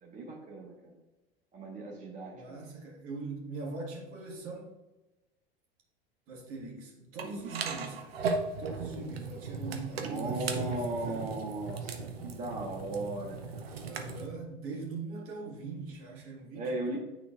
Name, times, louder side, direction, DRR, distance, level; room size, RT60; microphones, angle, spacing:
voice 1, 0.0-1.0 1.5-2.7 7.1-7.5 9.9-14.0 16.5-17.0, right 2 dB, 25° right, -3 dB, 1.3 m, -38 dB
voice 2, 2.3-4.7 6.3-8.2 8.6-11.3 13.9-17.0, right 3 dB, 45° right, -1 dB, 2.0 m, -41 dB
sound 1, 7.2-14.3, right 4 dB, 80° right, 0.8 m, -37 dB
9.2 x 4.0 x 2.5 m, 1.1 s
hypercardioid pair, 85°, 30 cm